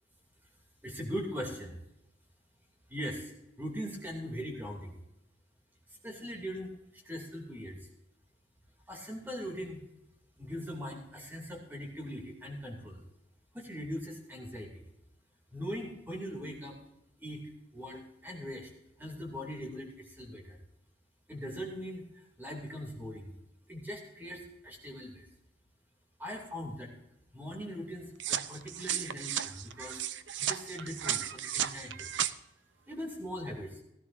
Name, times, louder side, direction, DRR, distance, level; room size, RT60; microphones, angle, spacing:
voice 1, 0.8-1.8 2.9-5.0 6.0-7.8 8.9-9.8 10.4-13.0 13.5-14.8 15.5-16.8 17.2-18.7 19.0-20.6 21.3-23.3 23.7-25.3 26.2-26.9 27.3-30.0 30.4-32.1 32.9-33.8, equal, 10° right, 0 dB, 2.7 m, -40 dB
sound 1, 28.2-32.3, right 10 dB, 70° right, 0.6 m, -34 dB
16.5 x 14.5 x 2.7 m, 0.85 s
head